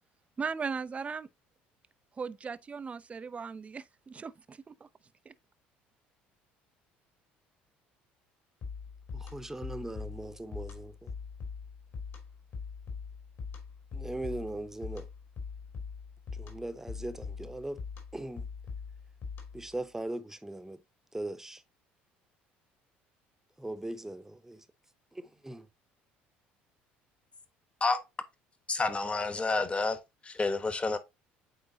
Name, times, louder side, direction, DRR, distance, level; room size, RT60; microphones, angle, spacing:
voice 1, 0.4-1.3 2.2-4.7 5.3-5.4, right 5 dB, 25° right, 0.4 m, -37 dB
sound 1, 8.6-19.7, left 5 dB, 55° left, 2.8 m, -42 dB
voice 2, 9.1-11.1 13.9-15.1 16.3-17.8 18.1-18.5 19.5-20.8 21.1-21.6 23.6-24.7 25.1-25.7, right 1 dB, 10° right, 0.9 m, -39 dB
voice 3, 28.7-31.0, left 3 dB, 25° left, 1.2 m, -30 dB
8.8 x 3.9 x 2.8 m
hypercardioid pair, 70°, 5 cm